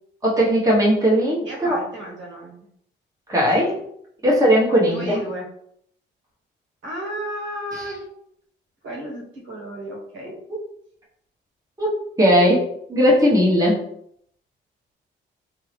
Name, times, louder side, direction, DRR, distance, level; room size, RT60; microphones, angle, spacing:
voice 1, 0.2-1.8 3.3-3.7 4.2-5.2 11.8-13.8, equal, 15° right, -4 dB, 1.3 m, -18 dB
voice 2, 1.4-2.6 3.5-3.6 4.9-5.5 6.8-8.0 8.8-10.3, right 1 dB, 70° right, -3 dB, 1.5 m, -33 dB
3.7 x 2.8 x 3.3 m, 0.70 s
cardioid pair, 90°, 20 cm